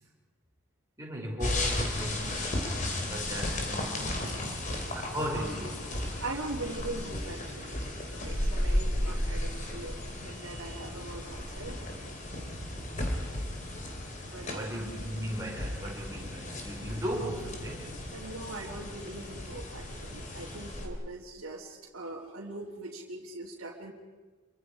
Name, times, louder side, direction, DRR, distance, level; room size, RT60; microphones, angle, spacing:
voice 1, 1.0-2.4 3.0-4.3 4.9-5.9 14.3-18.0, equal, 15° right, -3 dB, 5.3 m, -37 dB
sound 1, 1.4-20.9, left 1 dB, 35° left, 3.2 m, -34 dB
voice 2, 4.0-4.6 6.2-7.8 8.1-11.8 14.2-14.7 18.1-23.9, right 2 dB, 80° right, -5 dB, 3.1 m, -41 dB
26.5 x 24.0 x 5.1 m, 1.3 s
head